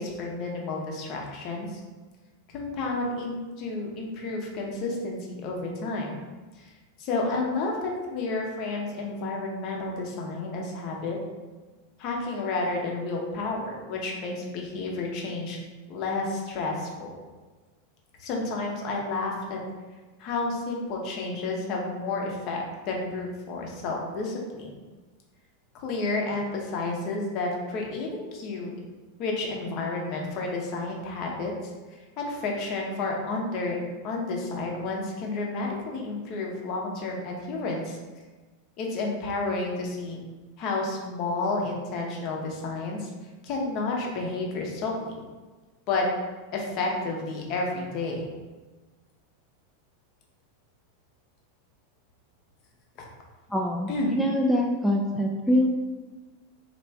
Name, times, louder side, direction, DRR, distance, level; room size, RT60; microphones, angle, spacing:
voice 1, 0.0-1.8 2.5-6.1 6.6-6.7 7.0-11.2 12.0-15.6 15.9-17.1 18.2-19.6 20.2-24.7 25.7-28.7 29.2-33.8 34.0-38.0 38.8-40.2 40.6-43.1 43.4-45.1 45.9-46.0 46.5-48.3 53.0-53.1 53.9-54.1, left 3 dB, 45° left, 0 dB, 0.7 m, -31 dB
voice 2, 53.5-55.7, left 1 dB, ahead, -2 dB, 0.3 m, -24 dB
3.2 x 2.4 x 3.3 m, 1.3 s
figure-of-eight pair, 90°, 0 cm